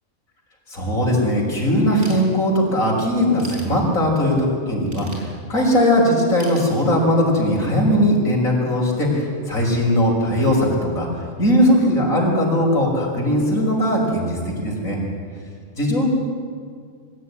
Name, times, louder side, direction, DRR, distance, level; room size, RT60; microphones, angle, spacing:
voice 1, 0.7-15.0 15.8-16.1, equal, 85° left, -2 dB, 6.2 m, -19 dB
Ratchet pawl / Tools, 2.0-2.8 3.2-4.3 4.9-5.8 6.4-7.4, right 1 dB, 75° right, 5.1 m, -41 dB
23.0 x 16.0 x 9.9 m, 2.1 s
omnidirectional pair, 1.4 m